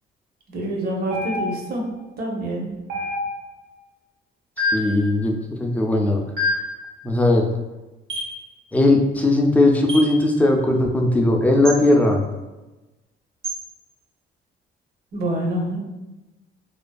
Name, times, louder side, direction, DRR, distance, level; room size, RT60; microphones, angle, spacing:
voice 1, 0.5-1.8 2.2-2.7 15.1-15.8, right 1 dB, 50° right, -1 dB, 0.7 m, -26 dB
sound 1, 1.1-1.8 2.9-3.6 4.6-5.0 6.4-6.8 8.1-8.4 9.9-10.2 11.6-11.8 13.4-13.6, left 2 dB, 85° right, 0.8 m, -26 dB
voice 2, 4.7-6.2 7.0-7.5 8.7-12.2, left 2 dB, 5° left, 1 dB, 0.3 m, -18 dB
2.5 x 2.3 x 2.2 m, 1.1 s
cardioid pair, 90°, 20 cm